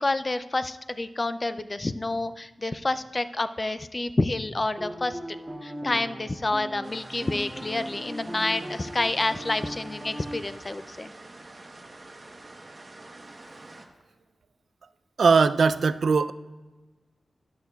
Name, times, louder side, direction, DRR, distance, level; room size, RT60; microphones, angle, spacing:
voice 1, 0.0-5.2 5.6-11.1, left 2 dB, 25° left, 12 dB, 0.3 m, -28 dB
sound 1, 4.8-10.4, right 1 dB, 15° right, 0.7 m, -38 dB
sound 2, 6.8-13.9, right 2 dB, 30° right, 1.0 m, -46 dB
voice 2, 15.2-16.3, right 5 dB, 70° right, 12 dB, 0.3 m, -20 dB
14.0 x 11.0 x 2.3 m, 1.2 s
wide cardioid pair, 130°, 0 cm